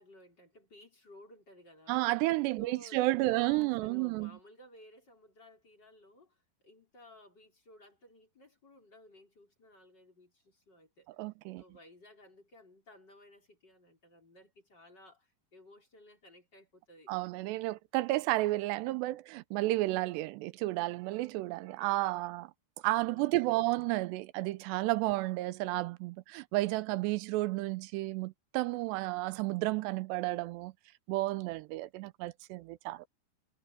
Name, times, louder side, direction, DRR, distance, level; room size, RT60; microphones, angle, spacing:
voice 1, 0.0-2.1 2.6-11.1 11.6-17.1 23.1-23.7, left 1 dB, 25° left, 5.4 m, -57 dB
voice 2, 1.9-4.3 11.2-11.6 17.1-22.5 22.8-30.7 31.1-33.1, right 19 dB, 90° right, 2.8 m, -32 dB
omnidirectional pair, 4.9 m